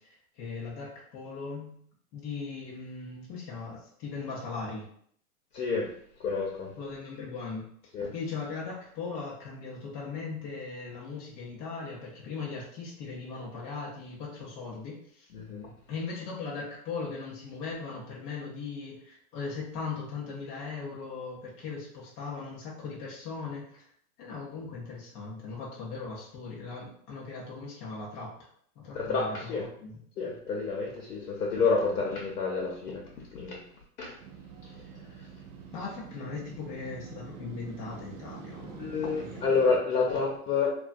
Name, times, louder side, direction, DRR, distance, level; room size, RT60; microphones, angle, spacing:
voice 1, 0.4-1.8 2.1-4.9 6.8-7.7 8.1-15.3 15.9-23.6 24.2-28.3 28.8-30.0 31.8-31.9 35.7-38.9 39.2-39.4, left 4 dB, 20° left, -5 dB, 0.4 m, -39 dB
voice 2, 5.5-5.9 6.2-6.7 7.9-8.1 15.3-15.7 28.9-29.7 30.2-33.0 33.3-33.6 34.0-34.2 38.8-40.7, left 4 dB, 75° left, -2 dB, 0.7 m, -29 dB
Motorcycle, 34.2-39.8, right 6 dB, 65° right, 0.5 m, -45 dB
2.4 x 2.2 x 2.4 m, 0.63 s
hypercardioid pair, 125°, 45 cm